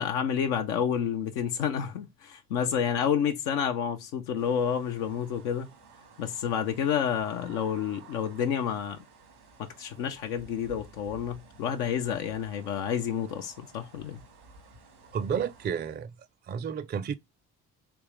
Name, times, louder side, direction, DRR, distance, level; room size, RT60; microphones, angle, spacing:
voice 1, 0.0-5.7 6.2-9.0 9.6-14.2, left 8 dB, 80° left, 0.6 m, -29 dB
sound 1, 4.3-15.7, right 3 dB, 90° right, 1.4 m, -53 dB
voice 2, 15.1-16.1 16.5-17.1, right 7 dB, 25° right, 0.4 m, -31 dB
3.4 x 3.0 x 3.2 m
hypercardioid pair, 50°, 44 cm